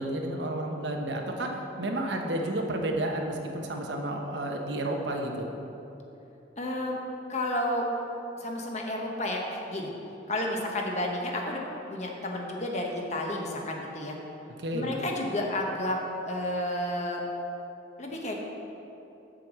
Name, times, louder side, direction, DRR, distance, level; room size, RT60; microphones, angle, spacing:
voice 1, 0.0-5.4 14.6-14.9, right 1 dB, 75° right, 2 dB, 0.9 m, -31 dB
voice 2, 6.6-7.0 7.3-7.9 8.4-9.9 10.3-11.6 11.9-14.2 14.7-16.0 16.2-17.2 18.0-18.3, left 1 dB, 40° left, 0 dB, 1.1 m, -31 dB
7.6 x 5.1 x 7.3 m, 3.0 s
head